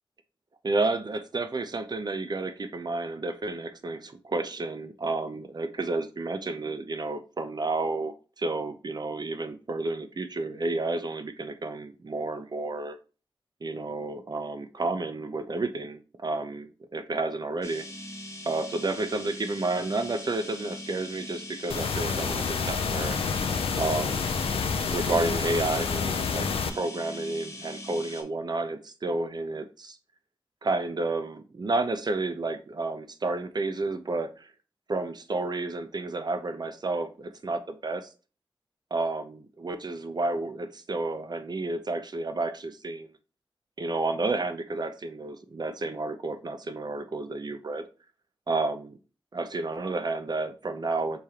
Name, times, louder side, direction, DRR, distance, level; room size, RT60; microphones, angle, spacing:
voice 1, 0.6-13.0 13.6-17.8 18.4-23.2 23.8-24.2 24.6-30.0 30.6-34.5 34.9-38.1 38.9-43.1 43.8-47.9 48.5-49.0 49.3-51.2, right 2 dB, 45° right, 8 dB, 0.6 m, -31 dB
sound 1, 17.6-28.2, left 1 dB, 30° left, 0.9 m, -41 dB
sound 2, 21.7-26.7, left 5 dB, 90° left, 0.4 m, -28 dB
4.9 x 3.6 x 2.8 m, 0.35 s
wide cardioid pair, 80°, 9 cm